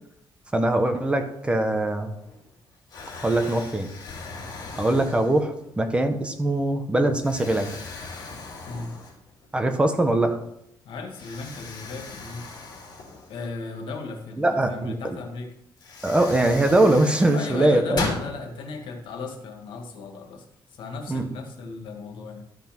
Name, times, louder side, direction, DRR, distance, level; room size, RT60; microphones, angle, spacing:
voice 1, 0.5-2.1 3.2-3.9 4.7-7.7 9.5-10.4 14.4-15.2 16.0-18.1 21.1-21.3, right 1 dB, 15° right, 6 dB, 1.1 m, -22 dB
Explosion, 2.2-2.6 2.9-5.7 6.3-6.5 7.2-9.5 9.8-9.9 11.1-13.8 15.2-15.3 15.8-18.3, left 3 dB, 55° left, 3.6 m, -37 dB
voice 2, 10.9-12.5 13.3-15.5 17.3-22.4, left 4 dB, 90° left, 4 dB, 2.0 m, -36 dB
13.0 x 5.7 x 6.0 m, 0.77 s
cardioid pair, 150°, 8 cm